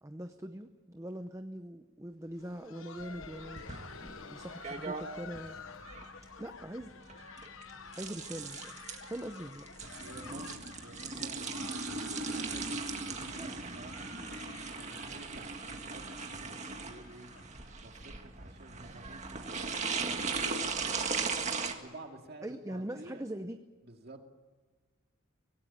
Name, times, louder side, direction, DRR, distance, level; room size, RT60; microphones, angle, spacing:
voice 1, 0.0-3.6 4.0-5.6 6.4-6.9 8.0-9.7 13.3-13.6 22.4-23.6, right 1 dB, 15° right, 8 dB, 0.7 m, -42 dB
Laughter, 2.2-17.9 18.2-18.3 18.9-19.0 19.5-19.7 20.8-20.9, left 5 dB, 70° left, 1.2 m, -50 dB
sound 1, 3.0-21.7, right 4 dB, 35° right, 1.9 m, -38 dB
voice 2, 10.0-14.1 14.7-17.3 17.8-21.1 21.7-23.2 23.8-24.2, right 2 dB, 50° right, 4 dB, 2.4 m, -52 dB
24.5 x 18.0 x 8.9 m, 1.4 s
head